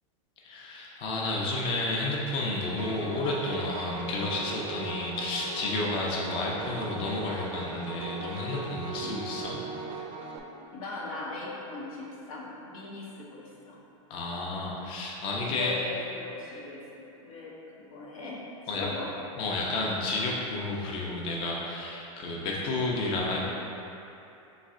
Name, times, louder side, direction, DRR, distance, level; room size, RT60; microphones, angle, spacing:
voice 1, 0.4-9.6 14.1-15.7 18.7-18.9 19.4-23.4, left 2 dB, 30° left, -3 dB, 0.5 m, -31 dB
Piano, 2.8-10.4, right 4 dB, 40° right, 0.4 m, -39 dB
voice 2, 10.7-13.8 15.4-16.8 17.2-18.4 18.8-19.1, left 3 dB, 90° left, -4 dB, 1.0 m, -39 dB
4.0 x 3.2 x 3.6 m, 2.9 s
supercardioid pair, 145°, 17 cm